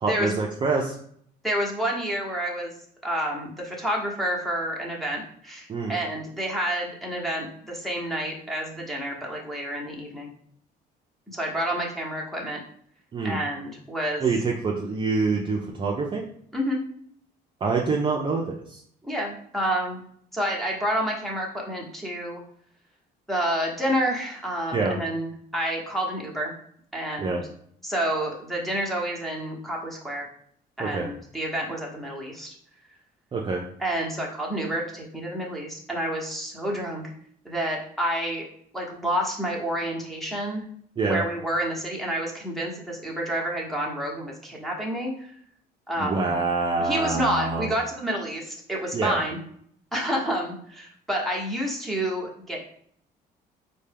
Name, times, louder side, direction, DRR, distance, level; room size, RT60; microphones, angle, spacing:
voice 1, 0.0-0.9 5.7-6.0 13.1-13.4 14.2-16.2 17.6-18.8 24.7-25.0 27.2-27.4 30.8-31.1 33.3-33.6 41.0-41.2 46.0-47.7 48.9-49.2, right 4 dB, 30° right, 0 dB, 0.4 m, -26 dB
voice 2, 1.4-2.7 3.0-10.3 11.3-12.6 13.2-14.2 16.5-16.8 19.0-20.0 20.3-22.4 23.3-26.5 26.9-27.4 27.8-30.2 30.8-32.5 33.8-37.1 37.4-38.5 38.7-40.6 41.0-45.3 45.9-46.3 46.8-49.4 49.9-52.6, right 1 dB, ahead, -2 dB, 0.9 m, -29 dB
4.2 x 2.2 x 3.3 m, 0.63 s
cardioid pair, 110°, 17 cm